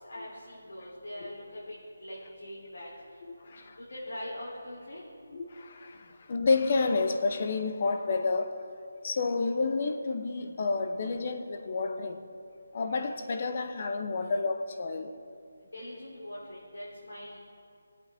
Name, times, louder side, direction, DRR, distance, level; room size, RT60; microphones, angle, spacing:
voice 1, 0.1-1.7 2.0-2.9 3.4-5.0 15.7-17.4, left 1 dB, 80° left, 3.4 m, -42 dB
voice 2, 5.3-6.0 6.3-8.5 9.0-12.2 12.7-15.1, left 3 dB, 40° left, 0.8 m, -29 dB
20.0 x 8.4 x 3.6 m
figure-of-eight pair, 170°, 0 cm